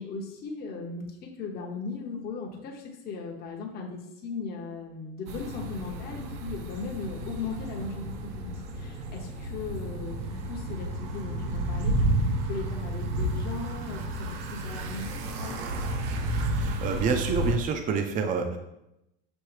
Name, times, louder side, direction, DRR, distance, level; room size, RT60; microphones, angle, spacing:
voice 1, 0.0-12.0 12.5-15.8, left 4 dB, 35° left, -1 dB, 0.7 m, -38 dB
sound 1, 5.3-17.6, right 1 dB, 65° right, 0.7 m, -31 dB
voice 2, 16.5-18.6, right 5 dB, 30° right, 5 dB, 0.5 m, -28 dB
6.2 x 2.7 x 3.1 m, 0.87 s
supercardioid pair, 115°, 29 cm